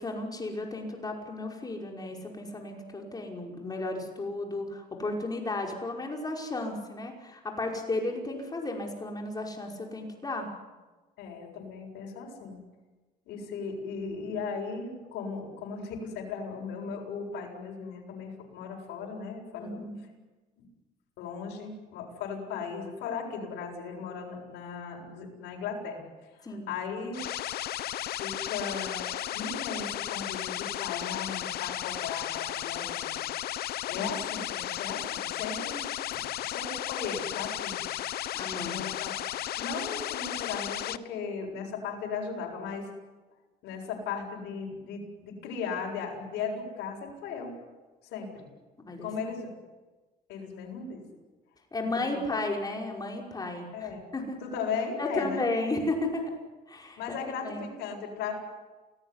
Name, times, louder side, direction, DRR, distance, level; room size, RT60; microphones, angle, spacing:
voice 1, 0.0-10.5 19.6-20.0 26.4-26.7 33.9-34.1 38.3-38.8 48.8-49.1 51.7-54.4 55.0-56.3 56.7-57.2 57.4-57.6, left 2 dB, 20° left, 1 dB, 5.6 m, -34 dB
voice 2, 11.2-12.6 13.3-19.8 20.6-20.7 21.2-26.0 26.7-27.2 28.0-33.2 33.9-35.8 36.4-37.9 38.5-39.1 39.6-42.9 43.6-47.5 48.0-48.5 49.0-49.5 50.3-51.0 52.1-52.4 53.7-54.0 54.4-55.5 57.0-58.3, left 5 dB, 85° left, -1 dB, 7.5 m, -37 dB
sound 1, 27.1-41.0, left 13 dB, 65° left, 1.0 m, -34 dB
29.0 x 18.5 x 9.9 m, 1.2 s
cardioid pair, 110°, 17 cm